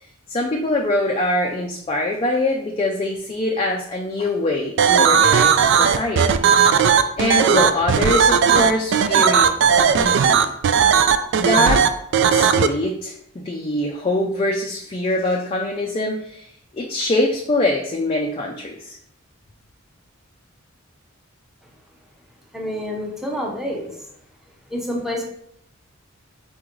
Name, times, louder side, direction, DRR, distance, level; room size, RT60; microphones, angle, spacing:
voice 1, 0.3-9.5 9.8-10.5 11.3-11.9 12.3-16.5 16.7-19.0, left 2 dB, 25° left, 0 dB, 0.4 m, -24 dB
sound 1, 4.8-12.7, right 7 dB, 60° right, 0.3 m, -16 dB
voice 2, 22.5-24.0 24.7-25.2, equal, ahead, -1 dB, 0.7 m, -28 dB
4.2 x 3.7 x 3.0 m, 0.71 s
head